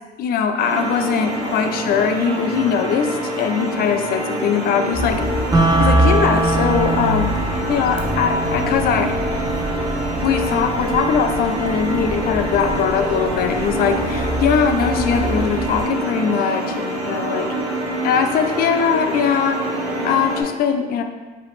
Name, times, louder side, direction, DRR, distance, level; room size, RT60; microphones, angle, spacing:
voice 1, 0.2-5.2 5.8-7.3 7.7-9.1 10.2-17.5 18.0-19.7 20.0-21.0, left 7 dB, 65° left, 7 dB, 0.4 m, -21 dB
sound 1, 0.6-20.4, right 1 dB, 85° right, 1.1 m, -26 dB
sound 2, 4.9-15.9, equal, 35° left, 0.7 m, -26 dB
sound 3, 5.5-15.5, right 3 dB, 20° right, 0.6 m, -26 dB
4.9 x 2.9 x 3.2 m, 1.3 s
cardioid pair, 110°, 17 cm